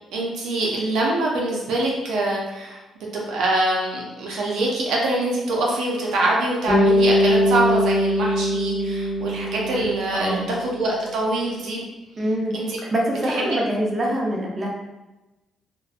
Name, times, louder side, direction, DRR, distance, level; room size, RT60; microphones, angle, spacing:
voice 1, 0.1-11.8 12.5-12.8 13.3-13.5, right 2 dB, 80° right, -3 dB, 0.5 m, -24 dB
Bass guitar, 6.7-10.9, equal, 15° left, 1.0 m, -21 dB
voice 2, 10.1-10.5 12.2-12.5 12.9-14.7, right 1 dB, 30° right, -2 dB, 0.6 m, -24 dB
2.5 x 2.1 x 2.4 m, 1.0 s
cardioid pair, 90°, 0 cm